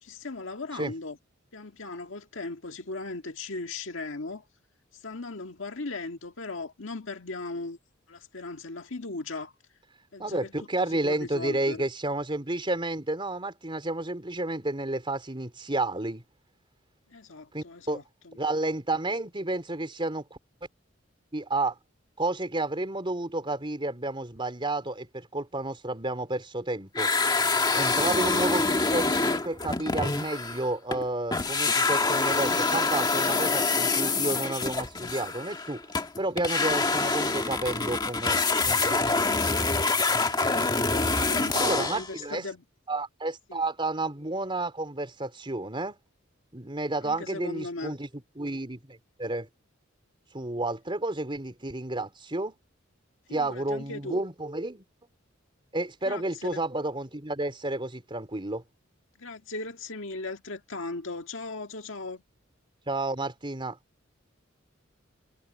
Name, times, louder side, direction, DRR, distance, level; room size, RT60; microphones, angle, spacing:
voice 1, 0.0-1.2 1.5-4.5 5.0-7.8 8.1-9.5 10.1-11.8 17.1-18.4 40.5-42.6 43.5-43.6 47.0-47.9 53.3-54.2 56.0-56.2 56.5-56.6 59.2-62.2, left 3 dB, 70° left, 1.9 m, -38 dB
voice 2, 10.2-16.2 17.5-18.0 18.3-20.4 21.3-21.7 22.2-27.1 27.7-35.8 36.2-38.4 38.7-39.3 41.5-42.4 42.9-46.0 46.5-48.1 48.4-49.5 50.3-52.5 53.3-54.8 55.7-58.6 62.9-63.8, right 2 dB, 25° right, 3.8 m, -31 dB
sound 1, 26.9-31.0 31.3-42.1, left 3 dB, 20° left, 1.7 m, -26 dB
head